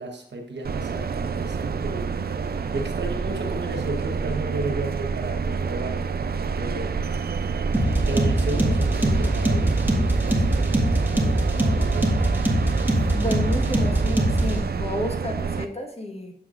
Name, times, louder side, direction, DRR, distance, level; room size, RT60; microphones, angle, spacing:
voice 1, 0.0-2.2 2.7-6.1 6.5-7.0 8.0-10.8 11.5-12.3, right 2 dB, 85° right, 3 dB, 1.1 m, -33 dB
sound 1, 0.6-15.6, right 5 dB, 60° right, 0.4 m, -28 dB
sound 2, 7.7-14.6, right 1 dB, 10° right, 1.7 m, -22 dB
voice 2, 13.1-16.3, left 1 dB, 35° left, 2 dB, 1.4 m, -31 dB
7.5 x 6.9 x 2.5 m, 0.63 s
cardioid pair, 50°, 18 cm